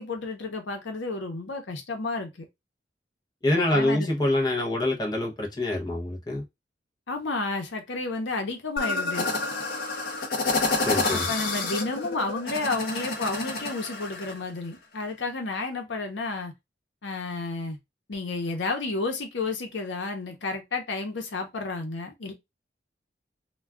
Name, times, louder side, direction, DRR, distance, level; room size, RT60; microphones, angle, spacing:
voice 1, 0.0-2.4 3.5-4.1 7.1-9.3 11.1-16.5 17.0-17.8 18.1-22.3, left 3 dB, 90° left, 0.8 m, -31 dB
voice 2, 3.4-6.4 10.8-11.3, left 1 dB, 20° left, 0.7 m, -25 dB
sound 1, 8.8-14.4, left 3 dB, 55° left, 0.8 m, -29 dB
2.3 x 2.3 x 3.4 m
head